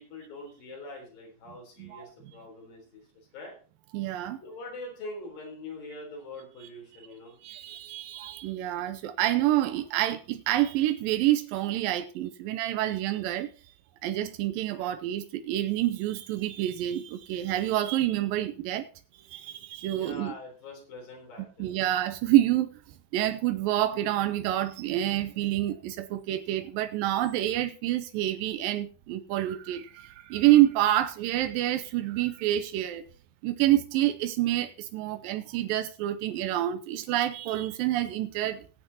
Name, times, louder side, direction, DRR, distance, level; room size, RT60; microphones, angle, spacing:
voice 1, 0.0-3.0 3.3-3.5 4.4-7.3 19.9-21.7, left 2 dB, 75° left, 5.4 m, -43 dB
voice 2, 1.8-2.1 3.9-4.4 6.6-6.7 7.4-13.5 14.0-18.9 19.3-20.3 21.6-22.7 23.1-33.0 33.4-38.6, right 14 dB, 90° right, 2.4 m, -27 dB
20.0 x 7.9 x 2.9 m
omnidirectional pair, 4.0 m